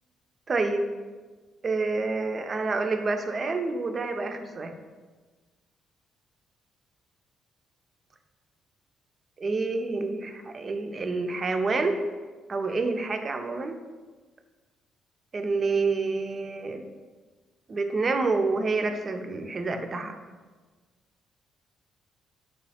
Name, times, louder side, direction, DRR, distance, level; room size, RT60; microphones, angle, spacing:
voice 1, 0.5-0.9 1.6-4.7 9.4-12.0 12.5-13.8 15.3-16.8 17.7-20.1, right 3 dB, 40° right, 6 dB, 0.3 m, -28 dB
3.3 x 3.0 x 2.7 m, 1.3 s
cardioid pair, 90°, 0 cm